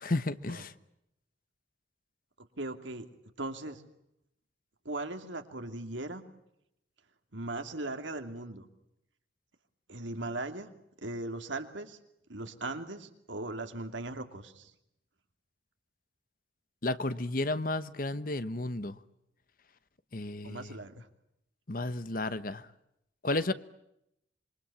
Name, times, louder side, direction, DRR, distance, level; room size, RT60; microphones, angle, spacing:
voice 1, 0.0-0.7 16.8-19.0 20.1-20.7 21.7-22.7 23.2-23.5, left 2 dB, 45° left, 14 dB, 1.0 m, -32 dB
voice 2, 2.6-3.1 3.4-3.8 4.8-6.2 7.3-8.7 9.9-10.7 11.0-12.0 12.3-14.7 20.4-21.1, right 2 dB, 75° right, 6 dB, 2.8 m, -38 dB
27.0 x 23.0 x 8.5 m, 0.80 s
head